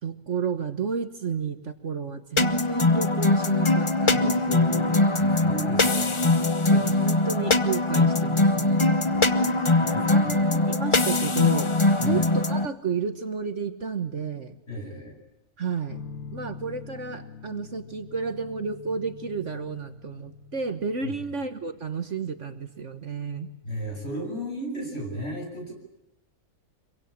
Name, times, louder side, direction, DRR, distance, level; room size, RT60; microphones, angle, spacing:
voice 1, 0.0-5.2 6.3-8.9 9.8-11.7 12.0-14.6 15.6-16.0 16.3-23.5, right 5 dB, 55° right, 9 dB, 1.7 m, -32 dB
sound 1, 2.4-12.7, left 2 dB, 25° left, 0.9 m, -22 dB
voice 2, 5.2-6.2 9.1-10.3 12.0-12.2 14.7-15.2 21.0-21.1 23.6-25.7, equal, 45° left, 1 dB, 8.4 m, -35 dB
sound 2, 15.9-23.6, left 5 dB, 65° left, 1.8 m, -45 dB
26.5 x 23.0 x 8.7 m, 0.89 s
omnidirectional pair, 1.6 m